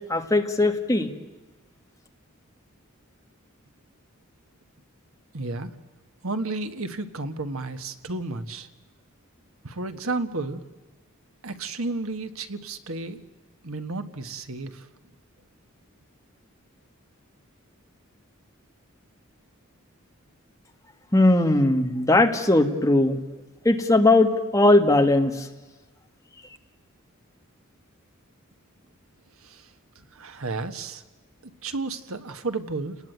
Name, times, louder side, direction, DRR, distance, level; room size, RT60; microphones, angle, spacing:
voice 1, 0.1-1.1 21.1-23.2 23.6-25.5, left 2 dB, 15° left, 5 dB, 1.6 m, -19 dB
voice 2, 5.3-5.7 6.2-8.7 9.6-10.6 11.4-13.2 13.6-14.9 29.4-29.7 30.1-31.0 31.4-33.0, right 3 dB, 80° right, 9 dB, 1.4 m, -32 dB
29.5 x 19.5 x 9.3 m, 1.2 s
head